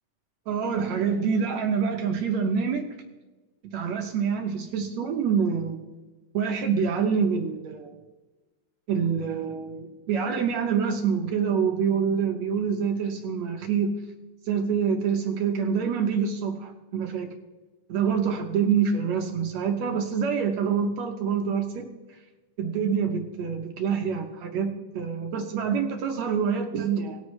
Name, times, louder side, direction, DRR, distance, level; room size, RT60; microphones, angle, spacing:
voice 1, 0.5-2.9 3.7-5.8 6.3-8.0 8.9-14.0 14.5-17.3 17.9-21.9 22.6-27.2, right 6 dB, 70° right, 4 dB, 1.9 m, -26 dB
18.5 x 7.9 x 3.1 m, 1.2 s
omnidirectional pair, 3.6 m